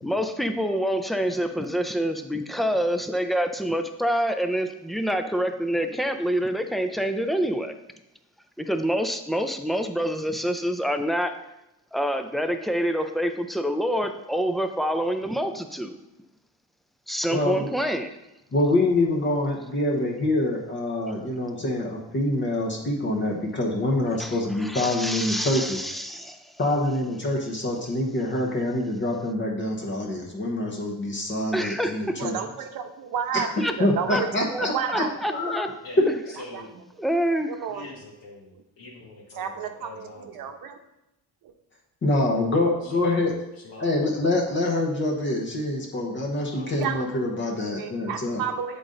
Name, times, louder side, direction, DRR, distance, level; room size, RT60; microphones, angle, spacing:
voice 1, 0.0-7.7 8.6-11.4 11.9-16.0 17.1-18.2 24.2-26.5 31.5-32.2 33.6-33.7 34.1-34.2 34.5-35.7 37.0-37.5, equal, ahead, 7 dB, 0.3 m, -27 dB
voice 2, 17.3-17.7 18.5-25.8 26.6-32.3 33.3-33.4 33.8-35.6 36.0-36.1 42.0-43.3 43.8-48.4, left 1 dB, 30° left, -1 dB, 0.9 m, -25 dB
voice 3, 32.2-35.1 35.5-35.8 36.5-36.6 37.5-37.9 39.4-40.8 41.4-41.5 46.8-47.0 47.5-48.8, right 7 dB, 75° right, 6 dB, 0.8 m, -32 dB
voice 4, 35.8-36.7 37.7-40.5 42.5-44.4 46.5-47.0, left 2 dB, 75° left, -6 dB, 1.4 m, -44 dB
7.9 x 3.9 x 3.8 m, 0.92 s
cardioid pair, 125°, 35 cm